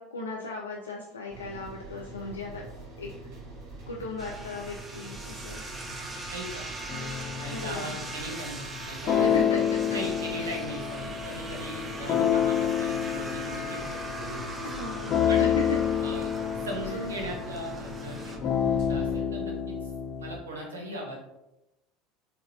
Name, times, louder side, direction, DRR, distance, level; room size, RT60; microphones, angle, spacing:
voice 1, 0.0-2.7 3.0-3.1 3.9-5.6 7.5-7.9 9.2-9.8 10.4-10.5 14.6-15.8, left 3 dB, 85° left, -1 dB, 0.3 m, -36 dB
sound 1, 1.3-19.2, right 2 dB, 65° right, 1.2 m, -44 dB
sound 2, 4.2-18.4, right 2 dB, 20° right, 0.5 m, -41 dB
voice 2, 6.3-6.6 7.4-9.4 9.9-14.7 15.3-15.4 16.0-16.3 16.6-19.9 20.2-21.2, right 1 dB, 85° right, 0 dB, 0.8 m, -38 dB
sound 3, 6.9-20.4, left 9 dB, 45° left, 0.7 m, -29 dB
4.1 x 2.1 x 2.7 m, 0.92 s
hypercardioid pair, 75°, 0 cm